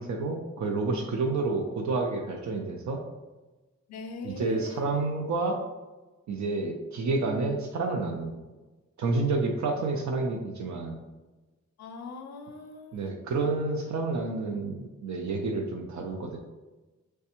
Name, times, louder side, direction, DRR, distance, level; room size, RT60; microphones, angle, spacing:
voice 1, 0.0-3.0 4.2-5.6 6.3-8.4 9.0-11.0 12.9-16.4, right 3 dB, 75° right, 2 dB, 0.5 m, -29 dB
voice 2, 3.9-4.9 11.8-13.6, left 3 dB, 65° left, 5 dB, 0.5 m, -42 dB
3.3 x 3.2 x 2.9 m, 1.2 s
wide cardioid pair, 140°, 29 cm